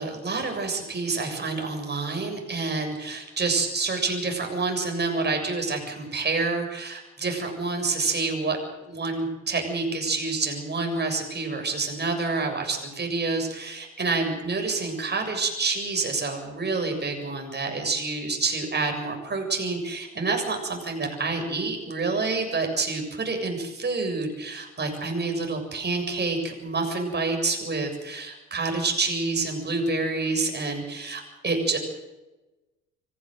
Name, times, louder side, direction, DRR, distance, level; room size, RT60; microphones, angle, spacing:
voice 1, 0.0-31.8, right 3 dB, 25° right, 3 dB, 7.4 m, -28 dB
25.0 x 16.0 x 7.9 m, 1.1 s
hypercardioid pair, 60°, 37 cm